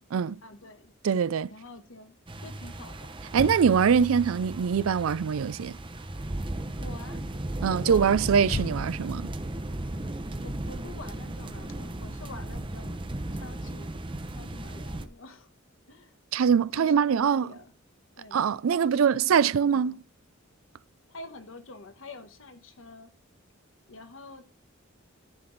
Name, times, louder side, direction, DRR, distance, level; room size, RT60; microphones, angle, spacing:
voice 1, 0.4-0.9 1.5-3.1 3.4-3.6 6.8-7.2 7.8-8.2 10.4-14.0 14.4-15.5 15.9-16.1 16.7-17.7 18.2-18.4 18.7-20.0 21.1-23.1 23.9-24.4, left 2 dB, 70° left, 1.2 m, -47 dB
voice 2, 1.0-1.5 3.3-5.7 7.6-9.3 16.3-17.5 18.3-20.0, right 7 dB, 85° right, 0.4 m, -23 dB
sound 1, 2.3-15.1, right 1 dB, 25° right, 0.8 m, -36 dB
Motor vehicle (road), 3.3-6.8 8.4-11.0 11.3-11.6, left 3 dB, 50° left, 0.5 m, -42 dB
13.5 x 6.0 x 3.9 m
head